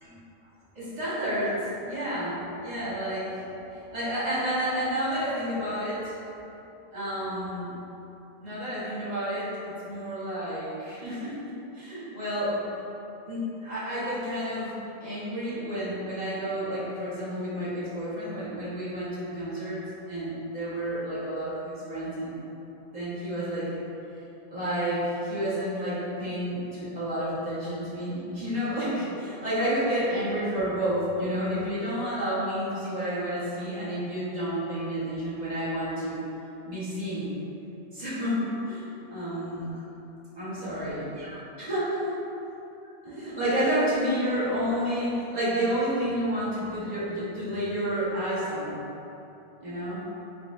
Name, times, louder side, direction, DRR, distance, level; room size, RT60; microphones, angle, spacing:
voice 1, 0.7-6.2 6.9-7.7 8.4-12.6 13.3-14.7 15.0-19.8 20.1-22.4 22.9-23.8 24.5-36.2 36.6-37.3 37.9-39.8 40.3-42.2 43.0-48.8 49.6-50.0, equal, 40° right, -11 dB, 1.4 m, -30 dB
4.8 x 2.2 x 3.6 m, 2.9 s
omnidirectional pair, 1.1 m